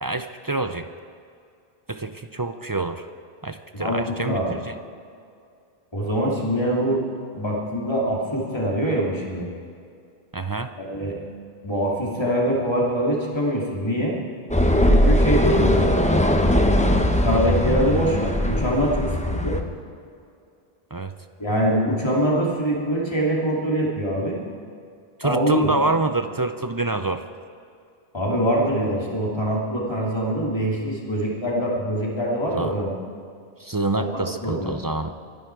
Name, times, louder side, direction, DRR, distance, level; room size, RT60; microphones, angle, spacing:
voice 1, 0.0-0.9 1.9-3.1 3.4-4.7 10.3-10.7 20.9-21.1 25.2-27.2 32.5-32.7 33.6-35.1, right 3 dB, 30° right, 9 dB, 0.4 m, -26 dB
voice 2, 3.7-4.6 5.9-7.0 7.3-9.5 10.8-11.2 11.6-14.2 14.8-16.2 16.6-19.6 21.4-24.4 25.2-25.8 28.1-33.0 33.9-34.7, equal, 25° left, -4 dB, 3.0 m, -24 dB
sound 1, 14.5-19.6, left 1 dB, 10° left, 0.8 m, -20 dB
24.0 x 10.5 x 4.8 m, 2.4 s
omnidirectional pair, 1.1 m